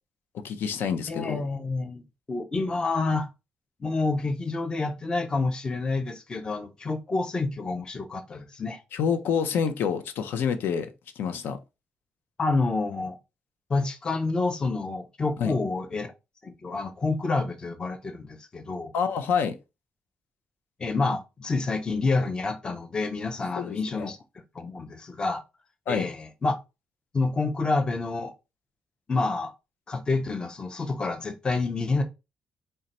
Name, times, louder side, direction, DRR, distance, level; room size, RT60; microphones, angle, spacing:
voice 1, 0.3-1.4 8.9-10.9 11.2-11.6 15.4-15.6 18.9-19.6 23.6-24.1 25.9-26.1, left 7 dB, 75° left, 0.6 m, -27 dB
voice 2, 1.1-2.0 2.3-3.3 3.8-8.8 12.4-13.2 13.7-16.1 16.4-18.9 20.8-24.2 24.5-25.4 25.9-26.5 27.1-28.3 29.1-29.5 29.9-32.0, left 3 dB, 25° left, 0.5 m, -28 dB
3.9 x 2.2 x 4.1 m
cardioid pair, 150°, 4 cm